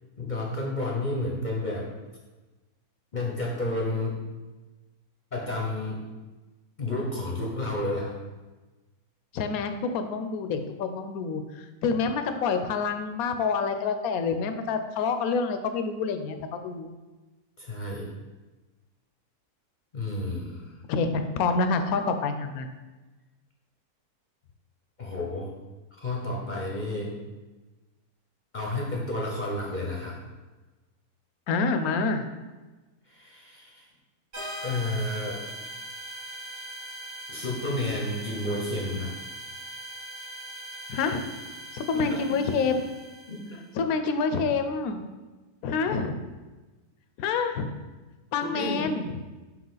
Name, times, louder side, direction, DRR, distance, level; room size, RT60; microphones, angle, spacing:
voice 1, 0.2-1.9 3.1-4.2 5.3-6.0 6.8-8.2 17.6-18.1 19.9-20.7 25.0-25.5 26.0-27.2 28.5-30.2 33.1-33.9 34.6-35.4 37.3-39.1 41.9-42.4 43.3-43.5 48.5-48.9, left 2 dB, 40° left, -2 dB, 0.7 m, -31 dB
voice 2, 9.3-16.9 20.9-22.7 31.5-32.2 40.9-41.2 41.7-42.8 43.7-45.0 45.6-46.2 47.2-47.7 48.3-49.1, left 4 dB, 75° left, 8 dB, 1.0 m, -27 dB
sound 1, 34.3-43.7, right 1 dB, 45° right, 1.4 m, -41 dB
5.8 x 4.7 x 3.9 m, 1.2 s
omnidirectional pair, 1.6 m